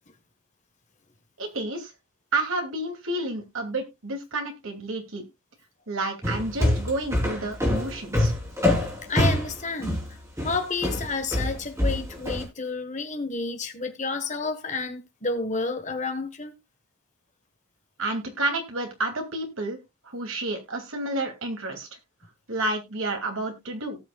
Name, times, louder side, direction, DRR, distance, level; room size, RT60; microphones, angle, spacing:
voice 1, 1.4-1.9 2.3-5.3 5.9-8.3 18.0-19.8 20.0-21.9 22.5-24.0, right 2 dB, 65° right, 2.6 m, -30 dB
sound 1, 6.2-12.4, left 1 dB, 15° right, 3.6 m, -25 dB
voice 2, 9.1-10.0 10.4-16.5, left 3 dB, 35° left, 1.4 m, -30 dB
18.0 x 6.2 x 2.3 m
head